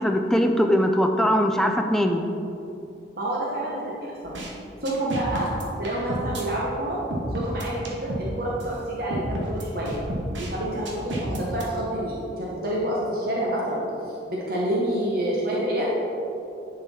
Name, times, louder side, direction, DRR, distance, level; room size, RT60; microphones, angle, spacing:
voice 1, 0.0-2.2, equal, ahead, 4 dB, 0.3 m, -21 dB
voice 2, 3.2-4.4 4.8-5.5 5.8-7.0 7.3-10.0 10.4-13.8 14.3-15.9, right 1 dB, 50° right, -5 dB, 0.9 m, -28 dB
sound 1, 4.2-4.5 4.8-6.4 7.1-8.3 8.6-8.7 9.1-10.5 10.8-11.6, right 1 dB, 70° right, 1.1 m, -31 dB
10.0 x 3.9 x 4.2 m, 2.8 s
head